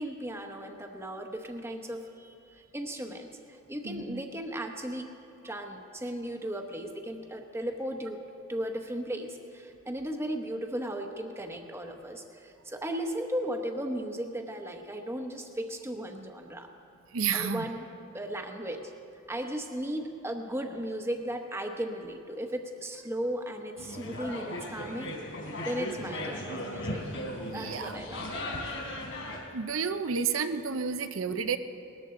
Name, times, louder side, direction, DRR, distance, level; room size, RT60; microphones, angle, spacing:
voice 1, 0.0-5.2 5.4-8.2 8.5-16.7 17.3-18.9 19.3-25.2 25.6-27.0 27.5-28.2 30.2-30.3, right 1 dB, 10° right, 4 dB, 0.9 m, -36 dB
voice 2, 3.8-4.2 17.1-17.6 27.5-28.0 29.5-31.6, right 6 dB, 80° right, 10 dB, 0.7 m, -31 dB
sound 1, 23.8-29.4, left 1 dB, 70° left, 3.8 m, -37 dB
19.5 x 14.0 x 3.8 m, 2.5 s
head